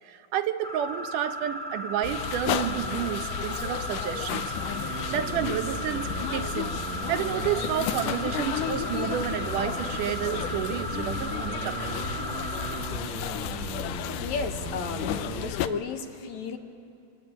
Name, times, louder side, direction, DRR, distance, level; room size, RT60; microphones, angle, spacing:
voice 1, 0.0-4.5 4.8-6.8 7.1-12.0, right 10 dB, 85° right, 8 dB, 2.5 m, -31 dB
sound 1, 0.6-12.8, right 1 dB, 10° left, 4.2 m, -36 dB
sound 2, 2.0-15.7, left 10 dB, 85° left, 2.3 m, -33 dB
sound 3, 4.2-15.5, right 7 dB, 65° right, 2.3 m, -39 dB
voice 2, 14.2-16.6, left 5 dB, 70° left, 6 dB, 2.5 m, -33 dB
24.5 x 24.0 x 9.0 m, 2.6 s
omnidirectional pair, 3.6 m